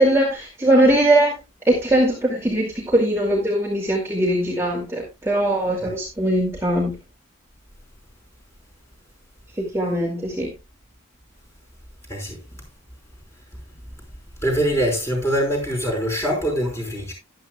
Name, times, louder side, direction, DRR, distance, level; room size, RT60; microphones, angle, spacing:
voice 1, 0.0-1.4 1.7-7.0 9.6-10.5, right 1 dB, 10° right, 2.4 m, -20 dB
voice 2, 12.1-12.4 14.4-17.1, equal, 10° left, 5.1 m, -23 dB
13.5 x 11.5 x 2.3 m
head